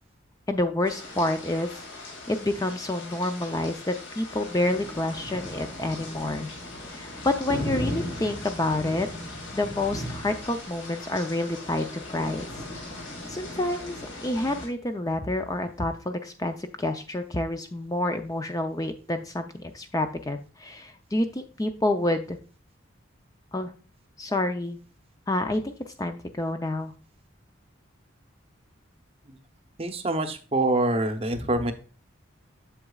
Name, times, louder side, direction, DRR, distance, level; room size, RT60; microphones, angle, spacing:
voice 1, 0.5-1.8 2.3-6.5 6.9-9.1 9.5-12.4 13.3-22.4 23.5-23.7 24.2-24.8 25.3-25.7 26.0-26.9 31.4-31.5, left 1 dB, 15° left, 7 dB, 0.5 m, -28 dB
sound 1, 0.8-14.7, left 1 dB, 70° left, 2.4 m, -37 dB
voice 2, 29.8-31.7, right 2 dB, 30° right, 8 dB, 0.7 m, -25 dB
7.9 x 7.2 x 2.3 m, 0.36 s
head